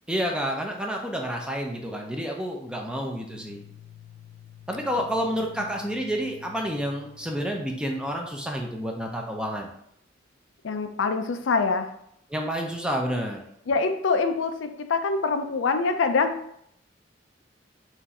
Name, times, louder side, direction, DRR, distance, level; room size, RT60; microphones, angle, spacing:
voice 1, 0.1-3.6 4.7-9.7 12.3-13.4, equal, 5° right, 1 dB, 0.6 m, -29 dB
sound 1, 3.3-9.1, left 11 dB, 35° left, 0.9 m, -50 dB
voice 2, 10.6-11.9 13.7-16.4, left 4 dB, 85° left, 8 dB, 0.4 m, -25 dB
4.4 x 2.6 x 4.1 m, 0.71 s
head